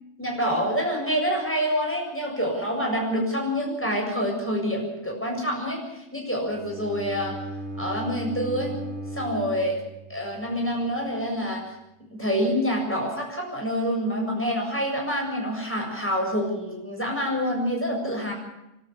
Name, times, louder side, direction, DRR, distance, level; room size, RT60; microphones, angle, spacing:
voice 1, 0.2-7.4 7.8-8.8 9.1-9.8 10.1-11.7 12.0-18.3, equal, 10° left, -1 dB, 7.4 m, -27 dB
Bowed string instrument, 6.5-10.6, right 1 dB, 65° right, 2.9 m, -36 dB
25.5 x 13.0 x 9.9 m, 0.90 s
omnidirectional pair, 1.5 m